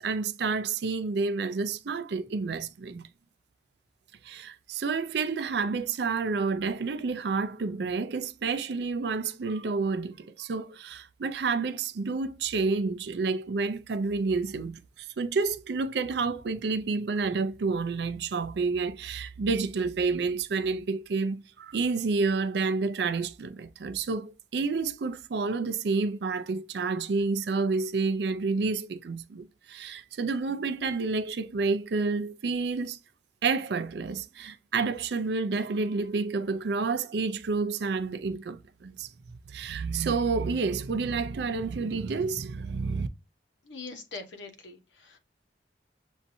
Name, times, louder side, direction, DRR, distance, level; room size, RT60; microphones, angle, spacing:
voice 1, 0.0-3.1 4.2-33.0 33.4-39.1 39.5-43.1, right 4 dB, 65° right, 0.4 m, -29 dB
voice 2, 43.6-45.2, left 3 dB, 80° left, 1.1 m, -42 dB
7.2 x 2.6 x 2.6 m
head